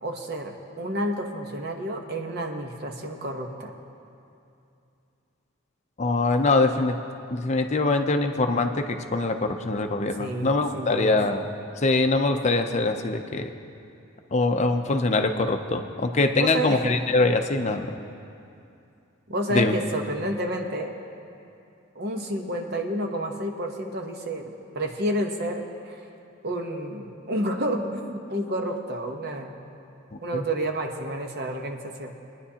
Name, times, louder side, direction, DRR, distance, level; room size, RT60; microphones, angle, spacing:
voice 1, 0.0-3.7 10.2-11.2 16.4-16.9 19.3-20.9 21.9-26.0 26.4-29.5 30.2-32.1, right 1 dB, 50° right, 3 dB, 0.9 m, -30 dB
voice 2, 6.0-6.9 7.3-11.4 11.8-13.5 14.3-18.0 19.5-19.7 30.3-30.4, left 3 dB, 35° left, 5 dB, 0.5 m, -23 dB
22.5 x 9.9 x 2.8 m, 2.6 s
head